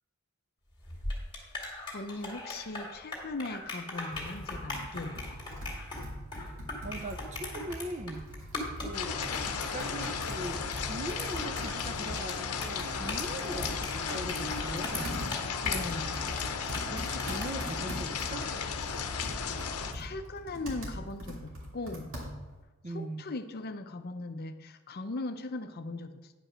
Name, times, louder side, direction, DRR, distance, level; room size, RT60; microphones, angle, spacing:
sound 1, 0.8-18.6, left 2 dB, 20° left, 2.3 m, -41 dB
voice 1, 1.9-5.4 15.6-16.2 19.9-22.2 22.9-26.3, left 2 dB, 45° left, 8 dB, 0.6 m, -39 dB
Computer keyboard, 4.1-22.6, equal, 60° right, 2.5 m, -43 dB
voice 2, 6.8-8.3 8.8-15.2 16.9-18.5 22.8-23.3, right 1 dB, 30° right, 8 dB, 0.6 m, -40 dB
sound 2, 8.9-19.9, left 6 dB, 80° left, 0.7 m, -35 dB
9.8 x 5.3 x 6.1 m, 1.2 s
head